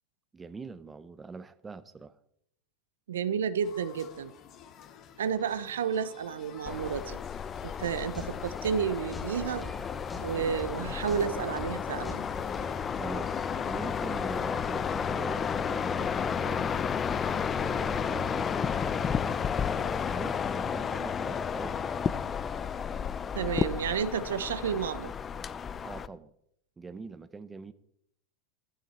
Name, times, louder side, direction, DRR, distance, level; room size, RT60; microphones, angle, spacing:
voice 1, 0.3-2.2 12.9-16.7 17.5-21.9 25.8-26.3 26.8-27.7, right 4 dB, 15° right, 1.0 m, -43 dB
voice 2, 3.1-4.3 5.2-7.2 7.6-9.7 10.2-12.3 23.3-25.1, right 7 dB, 75° right, 0.8 m, -31 dB
sound 1, 3.6-15.2, left 9 dB, 40° left, 1.7 m, -51 dB
sound 2, 6.7-26.1, left 7 dB, 25° left, 0.7 m, -32 dB
sound 3, 7.7-12.8, left 2 dB, 10° left, 3.5 m, -44 dB
15.0 x 13.0 x 4.4 m
hypercardioid pair, 90°, 0 cm